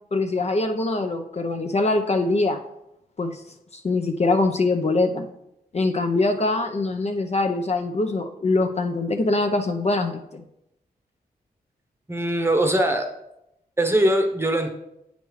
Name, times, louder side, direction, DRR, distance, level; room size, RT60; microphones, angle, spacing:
voice 1, 0.1-2.6 3.2-3.4 3.8-5.3 5.7-10.4, left 2 dB, 40° left, 4 dB, 0.6 m, -23 dB
voice 2, 12.1-13.1 13.8-14.7, right 1 dB, 15° right, 4 dB, 0.9 m, -21 dB
8.1 x 5.2 x 3.1 m, 0.84 s
cardioid pair, 60°, 16 cm